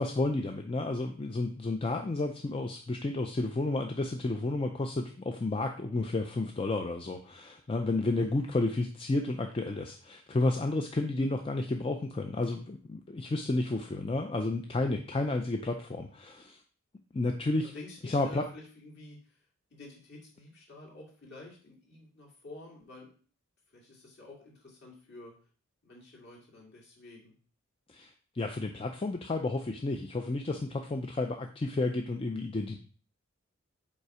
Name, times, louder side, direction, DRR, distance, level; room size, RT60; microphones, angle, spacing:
voice 1, 0.0-16.6 17.1-17.7 18.0-18.4 27.9-32.8, left 2 dB, 25° left, 4 dB, 0.4 m, -31 dB
voice 2, 17.6-19.4 19.7-23.1 23.7-25.3 25.8-27.3, left 2 dB, 50° left, -3 dB, 2.3 m, -50 dB
5.4 x 4.1 x 4.8 m, 0.42 s
head